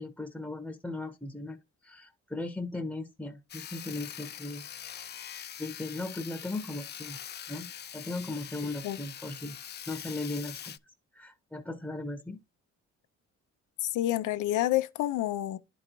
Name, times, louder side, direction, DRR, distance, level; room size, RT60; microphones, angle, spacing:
voice 1, 0.0-4.7 5.6-7.2 7.5-9.5 9.9-10.8 11.1-12.4, left 2 dB, 5° left, 1.0 m, -37 dB
Sawing, 3.5-10.8, left 9 dB, 35° left, 0.4 m, -43 dB
voice 2, 13.8-15.6, left 14 dB, 80° left, 0.6 m, -28 dB
10.5 x 3.9 x 3.0 m
cardioid pair, 90°, 30 cm